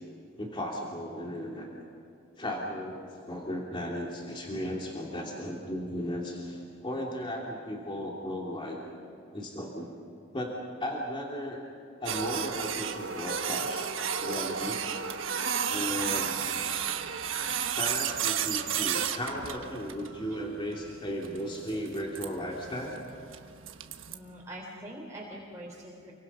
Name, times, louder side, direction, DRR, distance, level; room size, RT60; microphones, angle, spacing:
voice 1, 0.4-1.7 2.4-8.8 9.3-9.9 10.3-10.5 10.8-11.6 12.0-13.9 14.2-14.8 15.7-16.4 17.8-23.0, equal, 25° left, -2 dB, 2.7 m, -35 dB
Printer, 12.1-24.2, right 8 dB, 80° right, 1.3 m, -33 dB
voice 2, 24.1-26.1, right 1 dB, 15° right, -4 dB, 3.8 m, -43 dB
29.0 x 24.5 x 5.6 m, 2.6 s
head